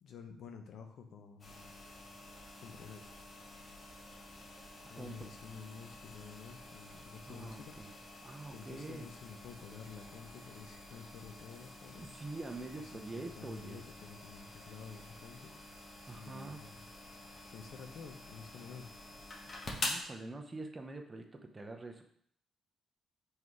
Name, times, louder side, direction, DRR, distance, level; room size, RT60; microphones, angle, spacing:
voice 1, 0.0-1.7 2.6-3.0 4.9-7.8 8.5-12.1 12.7-15.5 16.2-16.8 17.5-18.9, left 6 dB, 70° left, 5 dB, 0.8 m, -50 dB
sound 1, 1.4-20.0, left 2 dB, 40° left, 1.4 m, -48 dB
voice 2, 5.0-5.3 7.3-7.9 8.2-9.1 12.0-13.8 16.1-16.6 19.8-22.0, right 2 dB, 25° right, 3 dB, 0.8 m, -45 dB
5.5 x 3.9 x 4.7 m, 0.66 s
cardioid pair, 90°, 0 cm